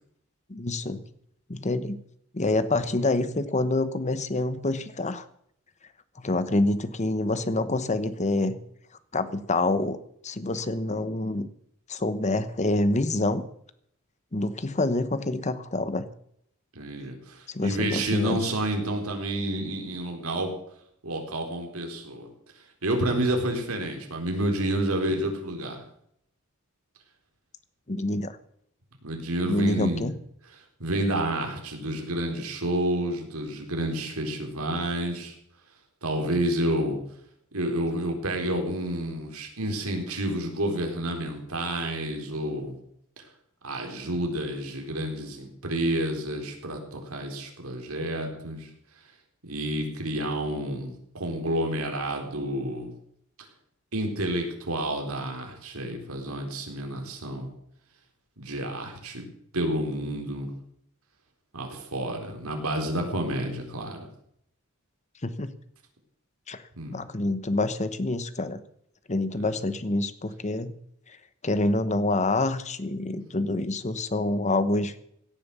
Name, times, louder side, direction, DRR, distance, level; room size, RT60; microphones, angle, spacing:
voice 1, 0.5-1.0 1.5-2.0 2.3-5.2 6.2-8.6 9.1-10.0 10.2-11.5 11.9-13.4 14.3-16.1 17.5-18.4 27.9-28.4 29.4-30.1 65.2-65.5 66.5-66.6 66.9-68.6 69.1-70.7 71.4-74.9, left 2 dB, 30° left, 13 dB, 1.0 m, -27 dB
voice 2, 16.7-20.5 21.0-22.3 22.8-25.8 29.0-30.0 30.8-35.3 36.0-37.0 37.5-42.8 43.6-48.7 49.4-52.9 53.9-57.5 58.4-59.2 59.5-60.5 61.5-64.0 66.7-67.0 73.0-73.2, right 1 dB, 80° right, 3 dB, 4.1 m, -29 dB
17.5 x 10.5 x 6.9 m, 0.71 s
head